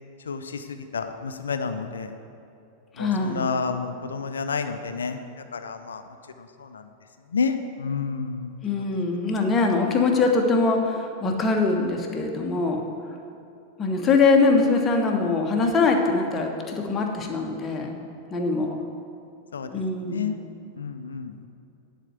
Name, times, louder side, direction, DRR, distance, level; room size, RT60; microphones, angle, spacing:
voice 1, 0.9-2.1 3.0-5.2 5.5-6.0 7.3-8.5 19.5-19.7 20.1-20.4 20.8-21.5, left 5 dB, 70° left, 9 dB, 0.6 m, -29 dB
voice 2, 3.0-3.5 8.6-12.8 13.8-18.0 18.3-18.8 19.7-20.4, left 3 dB, 25° left, 2 dB, 1.3 m, -23 dB
10.5 x 4.5 x 8.0 m, 2.7 s
figure-of-eight pair, 90°, 0 cm